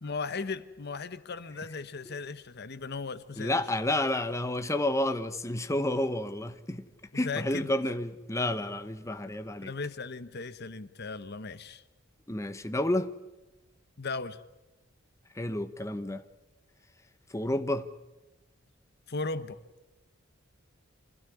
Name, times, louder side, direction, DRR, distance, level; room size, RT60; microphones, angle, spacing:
voice 1, 0.0-3.7 7.1-7.7 9.6-11.8 14.0-14.4 19.1-19.6, left 4 dB, 55° left, 1.0 m, -37 dB
voice 2, 3.4-6.8 7.1-9.7 12.3-13.1 15.4-16.2 17.3-17.9, left 1 dB, 15° left, 1.0 m, -30 dB
26.0 x 16.5 x 9.8 m
head